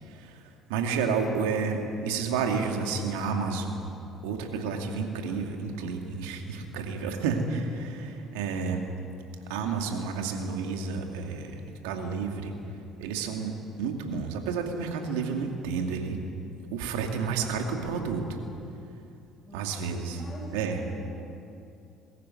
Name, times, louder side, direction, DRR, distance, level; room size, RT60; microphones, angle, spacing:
voice 1, 0.1-0.4 0.7-3.9 4.2-8.9 9.5-12.5 13.0-16.2 16.7-18.3 19.5-20.2 20.5-20.8, right 5 dB, 75° right, 3 dB, 2.4 m, -30 dB
voice 2, 16.8-18.0 19.5-21.0, left 2 dB, 25° left, -2 dB, 4.6 m, -46 dB
21.5 x 14.5 x 9.7 m, 2.7 s
hypercardioid pair, 60°, 0 cm